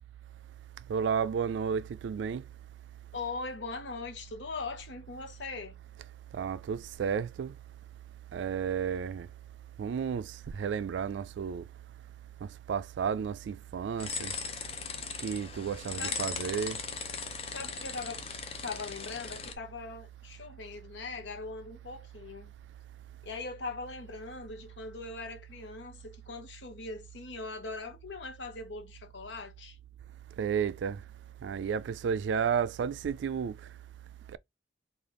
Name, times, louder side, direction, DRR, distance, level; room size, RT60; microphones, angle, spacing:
voice 1, 0.9-2.4 6.3-7.5 8.3-9.3 9.8-11.7 12.4-14.3 15.2-16.8 30.4-31.0 31.4-33.6 34.3-34.4, right 7 dB, 80° right, 0.3 m, -32 dB
voice 2, 3.1-5.8 16.0-16.2 17.4-18.2 18.6-22.5 23.2-29.8, left 3 dB, 85° left, 0.8 m, -40 dB
sound 1, 14.0-19.5, left 5 dB, 30° left, 0.5 m, -38 dB
3.3 x 2.4 x 3.7 m
head